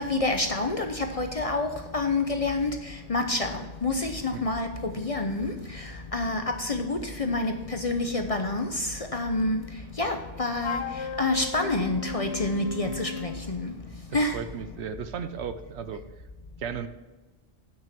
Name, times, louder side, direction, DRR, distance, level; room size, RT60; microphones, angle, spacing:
voice 1, 0.0-2.7 3.1-9.6 10.0-10.8 11.2-13.7 14.1-14.4, left 2 dB, 35° left, 0.6 m, -28 dB
Wind instrument woodwind instrument, 10.6-13.5, left 5 dB, 70° left, 0.9 m, -35 dB
voice 2, 14.1-16.0 16.6-16.9, right 7 dB, 70° right, 0.9 m, -35 dB
9.0 x 6.3 x 5.9 m
omnidirectional pair, 1.2 m